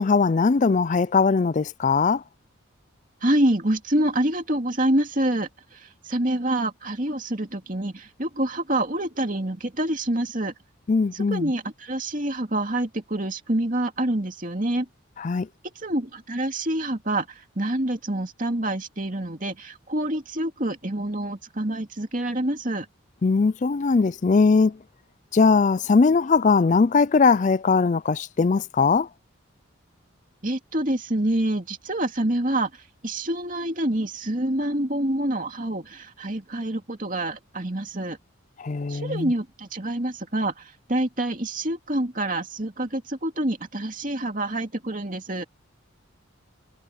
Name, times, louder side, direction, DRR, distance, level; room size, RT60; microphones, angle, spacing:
voice 1, 0.0-2.2 10.9-11.5 15.2-15.5 23.2-24.7 25.3-29.1 38.6-39.3, left 4 dB, 35° left, 0.4 m, -20 dB
voice 2, 3.2-10.5 11.1-14.9 15.8-22.9 30.4-32.7 33.0-38.2 38.9-45.4, right 1 dB, 40° right, 2.5 m, -27 dB
head